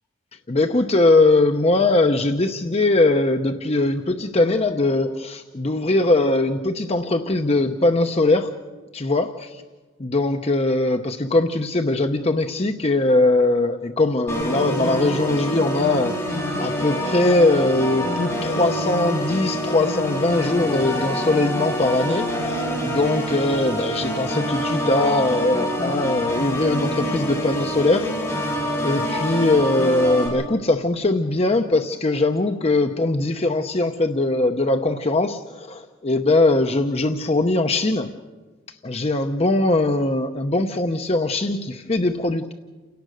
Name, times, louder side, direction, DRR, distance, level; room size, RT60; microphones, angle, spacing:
voice 1, 0.5-8.5 8.9-9.6 10.0-16.1 16.6-28.4 28.8-38.1 38.8-42.5, left 2 dB, 30° left, 6 dB, 0.8 m, -21 dB
Organ, 14.3-30.3, equal, 10° left, 7.7 m, -26 dB
29.5 x 17.5 x 6.4 m, 1.3 s
head